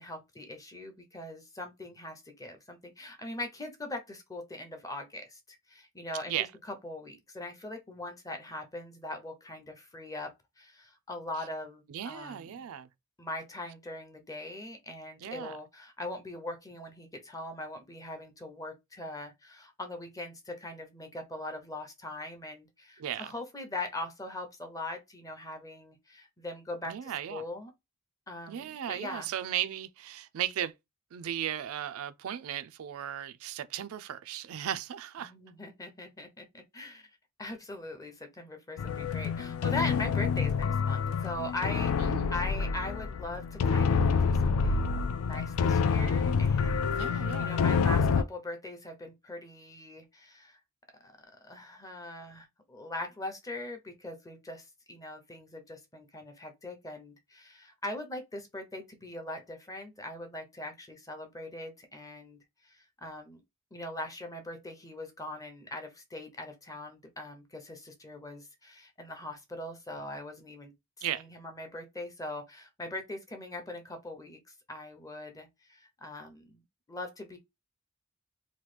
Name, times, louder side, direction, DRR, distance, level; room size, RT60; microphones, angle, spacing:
voice 1, 0.0-12.7 13.2-27.7 28.3-29.3 35.2-37.1 37.4-50.6 51.0-51.1 51.4-63.4 63.7-70.7 71.1-74.4 74.7-76.6 76.9-77.4, left 1 dB, 15° left, 0.6 m, -41 dB
voice 2, 11.9-12.9 15.2-15.5 23.0-23.3 26.9-27.4 28.5-30.7 31.1-35.3 42.0-42.3 47.0-47.5 71.0-71.2, right 10 dB, 65° right, 0.3 m, -36 dB
sound 1, 38.8-48.2, left 5 dB, 70° left, 0.3 m, -27 dB
2.9 x 2.2 x 3.3 m
head